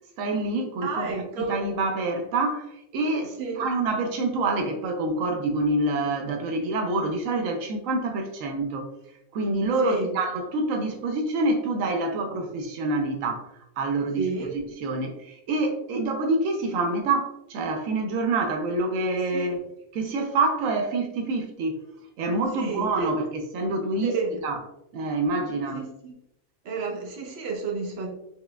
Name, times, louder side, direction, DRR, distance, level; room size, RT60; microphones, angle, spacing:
voice 1, 0.2-8.9 9.3-14.3 14.8-19.6 19.9-21.8 22.2-24.1 24.4-24.6 24.9-25.8, right 2 dB, 85° right, 4 dB, 1.0 m, -26 dB
voice 2, 0.8-1.6 3.4-3.7 9.8-10.2 14.2-14.5 19.1-19.5 22.5-23.1 24.0-24.4 25.7-26.1 26.6-28.1, right 4 dB, 55° right, 0 dB, 1.0 m, -31 dB
4.8 x 3.2 x 2.2 m, 0.84 s
omnidirectional pair, 1.3 m